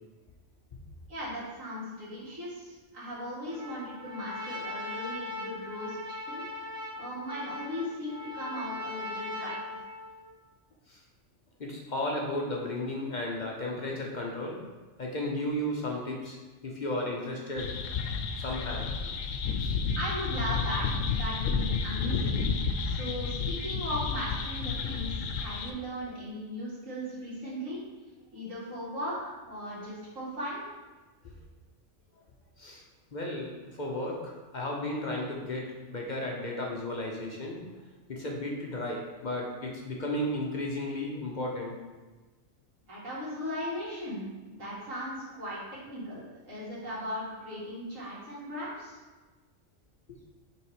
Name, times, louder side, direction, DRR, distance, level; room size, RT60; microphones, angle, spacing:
voice 1, 1.1-6.5 7.0-9.6 20.0-22.4 22.8-27.8 28.3-30.6 42.9-45.6 45.9-49.0, equal, 85° right, -8 dB, 2.5 m, -37 dB
Trumpet, 3.5-10.3, left 2 dB, 45° right, 1.1 m, -39 dB
voice 2, 11.6-14.6 15.0-17.7 18.4-18.9 19.6-19.7 32.6-32.8 33.1-37.6 38.1-41.8, left 1 dB, 45° left, -1 dB, 0.8 m, -34 dB
sound 1, 17.6-25.7, left 5 dB, 80° left, 1.0 m, -31 dB
5.9 x 3.5 x 4.9 m, 1.3 s
omnidirectional pair, 1.3 m